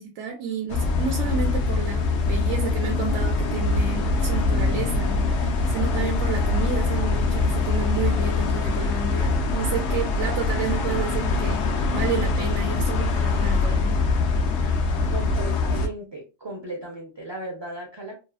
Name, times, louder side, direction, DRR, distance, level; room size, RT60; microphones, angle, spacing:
voice 1, 0.0-14.0, right 5 dB, 85° right, 0.9 m, -31 dB
sound 1, 0.7-15.9, left 3 dB, 75° left, 0.9 m, -23 dB
voice 2, 14.6-18.1, right 1 dB, 40° right, 0.4 m, -36 dB
2.7 x 2.3 x 2.2 m
omnidirectional pair, 1.2 m